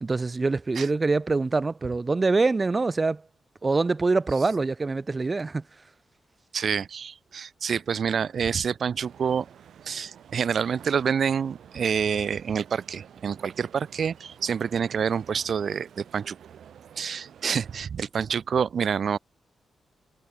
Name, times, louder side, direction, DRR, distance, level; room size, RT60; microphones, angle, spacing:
voice 1, 0.0-3.2 3.6-5.6, right 3 dB, 30° right, 0.8 m, -24 dB
voice 2, 6.5-9.5 9.9-16.4 17.0-19.2, right 7 dB, 65° right, 0.6 m, -27 dB
sound 1, 9.0-17.9, right 9 dB, 80° right, 7.7 m, -50 dB
cardioid pair, 75°, 0 cm